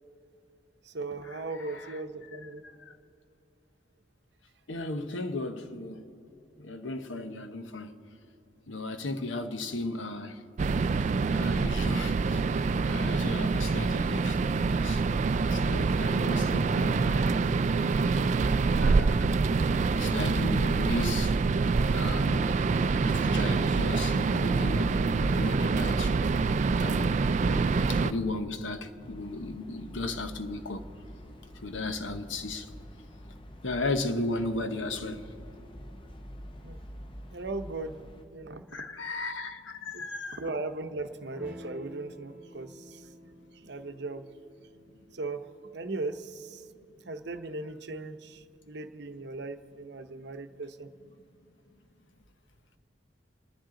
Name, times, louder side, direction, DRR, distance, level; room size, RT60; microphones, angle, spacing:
voice 1, 0.8-2.6 36.6-36.8 37.3-38.0 38.3-38.7 39.9-40.0 40.3-43.1 43.5-44.3 45.1-46.6 46.9-50.9, right 3 dB, 60° right, 0.8 m, -38 dB
voice 2, 1.6-2.0 2.9-3.0 4.7-6.1 6.6-7.9 8.7-10.4 11.3-12.6 12.8-14.4 14.7-15.0 15.5-17.3 17.7-17.9 18.8-19.3 19.9-21.4 21.9-22.5 23.0-26.1 26.8-27.2 27.4-30.8 31.6-32.7 33.6-35.2 38.7-40.4, left 2 dB, 90° left, 0.9 m, -35 dB
sound 1, 10.6-28.1, right 4 dB, 40° right, 0.3 m, -26 dB
sound 2, 29.0-38.2, equal, 25° left, 0.7 m, -47 dB
Electric guitar / Strum, 41.3-46.4, left 1 dB, 10° right, 1.7 m, -51 dB
29.5 x 10.5 x 3.8 m
head